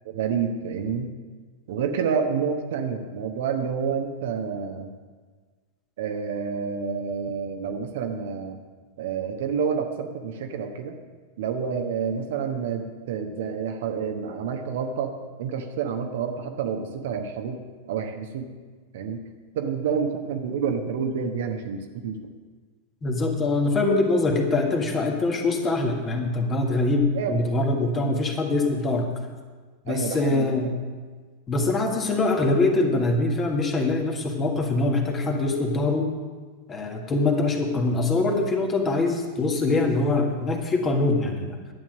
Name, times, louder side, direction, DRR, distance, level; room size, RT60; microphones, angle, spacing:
voice 1, 0.0-1.1 1.7-4.9 6.0-8.6 9.0-11.0 11.4-15.1 15.4-17.6 17.9-18.5 18.9-19.2 19.5-22.3 27.1-27.4 27.9-28.2 29.9-30.7, right 6 dB, 55° right, 5 dB, 1.1 m, -29 dB
voice 2, 23.0-29.1 29.9-30.7 31.5-36.1 36.7-41.6, left 2 dB, 20° left, 2 dB, 1.8 m, -23 dB
11.5 x 9.1 x 6.3 m, 1.4 s
figure-of-eight pair, 90°, 0 cm